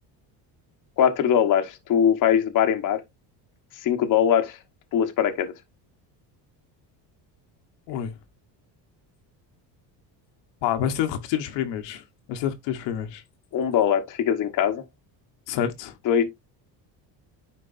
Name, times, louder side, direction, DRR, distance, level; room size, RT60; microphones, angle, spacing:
voice 1, 1.0-3.0 3.8-4.6 4.9-5.5 13.5-14.8 16.0-16.2, left 9 dB, 45° left, 1.2 m, -21 dB
voice 2, 10.6-13.2 15.5-15.9, left 10 dB, 75° left, 1.2 m, -28 dB
9.9 x 4.5 x 2.5 m
cardioid pair, 145°, 44 cm